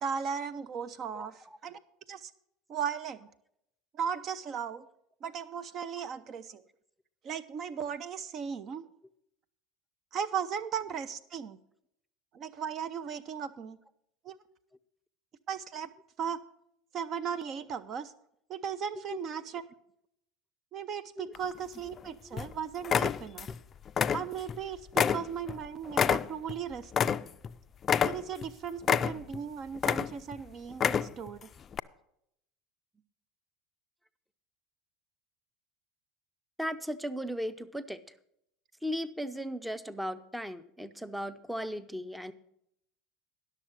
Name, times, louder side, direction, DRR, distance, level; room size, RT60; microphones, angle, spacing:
voice 1, 0.0-1.8 2.1-2.3 2.7-3.3 3.9-4.9 5.2-6.6 7.2-8.8 10.1-11.6 12.3-13.8 14.2-14.4 15.5-15.9 16.2-16.4 16.9-18.1 18.5-19.6 20.7-23.5 24.1-27.1 28.0-31.5, right 7 dB, 45° right, 14 dB, 0.5 m, -37 dB
sound 1, 21.3-22.0 22.4-22.5 22.8-23.6 23.9-24.6 24.9-27.5 27.8-28.5 28.8-29.4 29.8-30.4 30.7-31.3 31.7-31.8, left 7 dB, 35° left, 0.3 m, -28 dB
voice 2, 36.6-38.0 38.8-42.3, equal, 5° right, 13 dB, 0.6 m, -36 dB
11.5 x 6.6 x 6.3 m, 0.75 s
hypercardioid pair, 80°, 0 cm